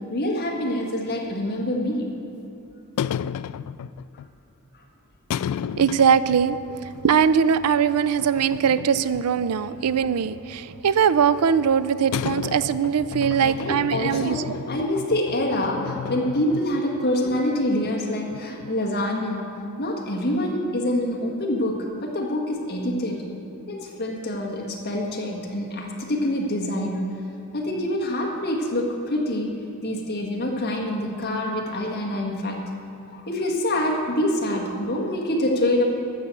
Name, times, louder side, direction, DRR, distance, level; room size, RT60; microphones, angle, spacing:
voice 1, 0.1-2.1 13.4-23.3 23.7-27.1 27.5-29.5 29.8-32.6 33.1-35.8, left 1 dB, 50° left, -1 dB, 1.8 m, -26 dB
sound 1, 1.8-1.9 3.0-4.3 5.3-6.6 6.9-7.0 8.2-9.5 9.7-10.6 12.1-17.1 17.3-17.4 17.8-17.9 18.3-18.9, left 8 dB, 90° left, 0.3 m, -32 dB
voice 2, 5.7-14.4, right 7 dB, 85° right, 15 dB, 0.4 m, -21 dB
12.5 x 6.8 x 7.7 m, 2.8 s
head